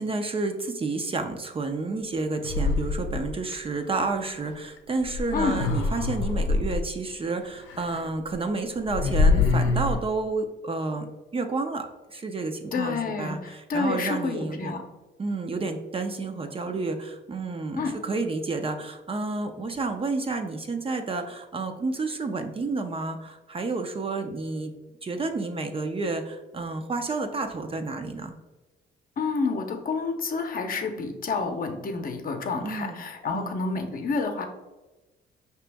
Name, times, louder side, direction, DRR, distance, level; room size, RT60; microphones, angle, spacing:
voice 1, 0.0-11.1 11.3-14.8 15.2-24.7 25.0-28.3 32.6-33.1 33.3-33.6, right 3 dB, 30° right, 6 dB, 0.5 m, -30 dB
sound 1, 2.4-3.5 5.0-6.8 7.7-8.0 8.3-8.4 8.8-10.0, left 3 dB, 85° left, 0.6 m, -24 dB
voice 2, 5.3-5.6 12.7-14.8 17.8-17.9 29.2-34.4, left 4 dB, 45° left, 5 dB, 0.7 m, -29 dB
5.0 x 2.9 x 3.4 m, 1.1 s
cardioid pair, 90°, 20 cm